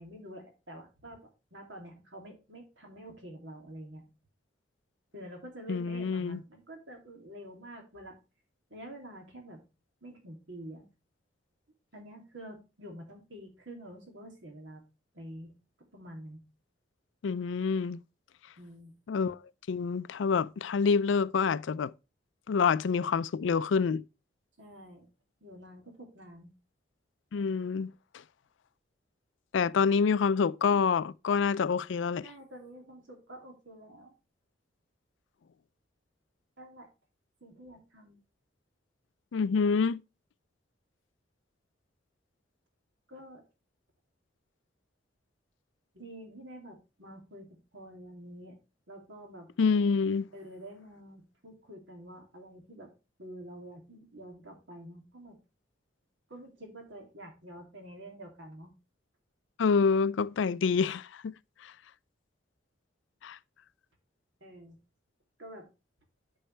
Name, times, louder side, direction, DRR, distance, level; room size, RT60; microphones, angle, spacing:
voice 1, 0.0-4.0 5.1-8.2 8.7-9.6 10.0-10.9 11.9-14.8 15.1-15.5 15.9-16.4 18.6-18.9 24.6-25.1 25.4-26.5 32.2-34.1 36.6-36.9 37.4-38.2 43.1-43.4 45.9-48.6 48.9-49.5 50.3-52.9 53.2-55.4 56.3-58.7 64.4-64.8 65.4-65.7, right 1 dB, 75° right, 2.7 m, -47 dB
voice 2, 5.7-6.4 17.2-18.0 19.1-19.4 19.7-21.9 22.5-24.0 27.3-27.9 29.5-32.3 39.3-40.0 49.6-50.3 59.6-61.3 61.6-61.7 63.2-63.4, left 5 dB, 75° left, 0.4 m, -27 dB
10.0 x 5.5 x 3.3 m
head